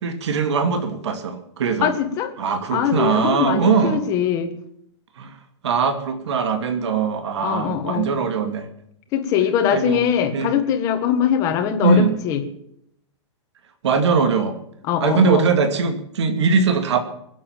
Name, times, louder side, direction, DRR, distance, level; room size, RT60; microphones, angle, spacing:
voice 1, 0.0-1.9 2.4-4.0 5.2-5.4 5.6-8.7 9.7-10.0 10.3-10.5 11.8-12.2 13.8-14.6 15.0-17.0, right 5 dB, 65° right, 7 dB, 2.4 m, -21 dB
voice 2, 1.8-2.3 2.7-4.5 7.4-8.1 9.1-12.4 14.9-15.4, left 9 dB, 20° left, 5 dB, 1.6 m, -22 dB
22.0 x 8.4 x 7.3 m, 0.74 s
hypercardioid pair, 170°, 16 cm